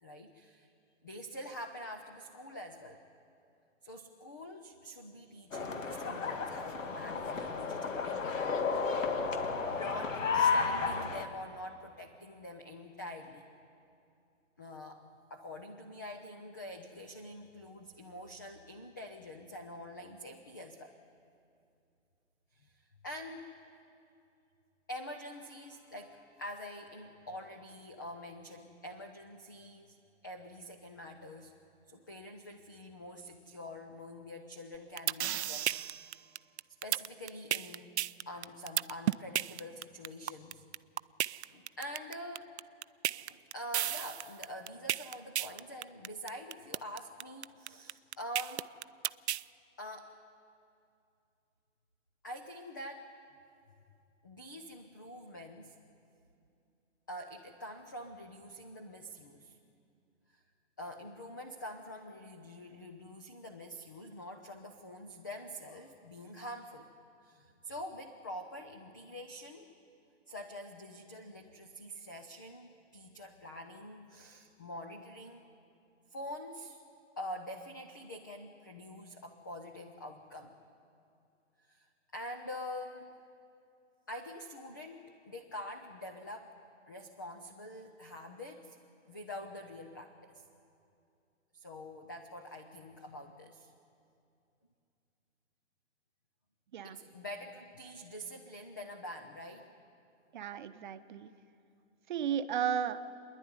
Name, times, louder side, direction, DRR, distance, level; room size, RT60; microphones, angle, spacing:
voice 1, 0.0-0.7 1.0-3.0 3.8-8.7 9.7-13.4 14.6-20.9 22.5-23.5 24.9-30.0 30.2-31.5 31.9-36.2 36.8-38.0 38.3-40.6 41.5-42.5 43.1-48.7 49.8-50.2 52.2-53.1 54.2-55.8 57.1-59.6 60.3-60.4 60.8-66.9 67.2-69.7 70.3-75.4 76.1-76.8 77.2-80.6 81.7-83.1 84.1-86.5 86.9-88.8 89.1-90.4 91.5-93.7 96.8-99.7, left 1 dB, 15° left, 5 dB, 0.4 m, -46 dB
sound 1, 5.5-11.3, left 5 dB, 80° left, 2.0 m, -32 dB
sound 2, 34.7-49.4, right 12 dB, 60° right, 0.5 m, -33 dB
voice 2, 100.3-101.3 102.1-103.0, right 8 dB, 40° right, 10 dB, 0.8 m, -34 dB
29.0 x 11.0 x 9.7 m, 2.5 s
hypercardioid pair, 160°, 38 cm